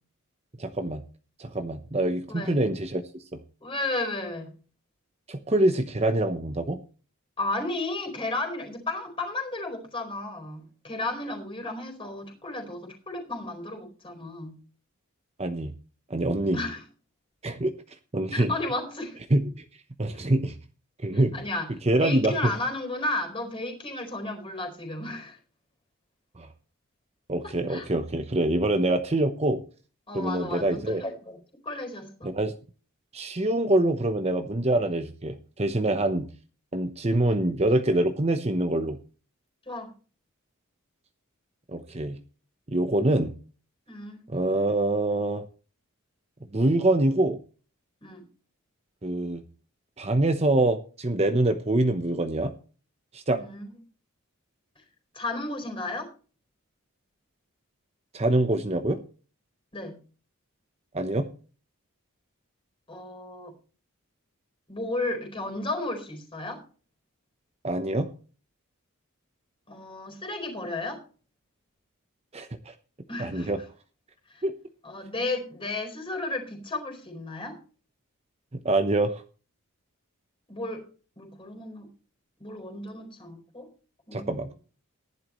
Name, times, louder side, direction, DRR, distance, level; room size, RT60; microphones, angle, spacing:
voice 1, 0.6-1.0 1.4-3.0 3.3-3.4 5.3-6.8 15.4-15.7 16.1-16.6 17.4-17.7 18.1-18.5 19.3-19.6 20.0-20.5 21.0-21.4 21.8-22.5 26.4-26.5 27.3-29.6 30.1-31.0 32.2-32.5 33.1-36.3 36.7-39.0 41.7-42.2 42.7-43.3 44.3-45.4 46.5-47.4 49.0-49.4 50.0-52.5 53.1-53.4 58.1-59.0 60.9-61.3 67.6-68.1 72.3-72.7 73.2-73.6 74.4-74.5 78.6-79.2 84.1-84.6, right 1 dB, 30° right, 7 dB, 0.9 m, -25 dB
voice 2, 2.3-2.6 3.6-4.5 7.4-14.6 16.5-16.8 18.3-19.2 21.3-21.7 22.0-25.4 27.4-27.9 30.1-31.4 31.6-32.3 39.7-39.9 43.9-44.2 48.0-48.2 53.3-53.7 55.1-56.1 59.7-60.0 62.9-63.5 64.7-66.6 69.7-71.0 73.1-73.5 74.3-74.4 74.8-77.6 80.5-80.8 81.2-81.9 82.4-83.7 84.1-84.5, left 2 dB, 25° left, 4 dB, 4.3 m, -33 dB
15.5 x 11.0 x 3.1 m, 0.37 s
head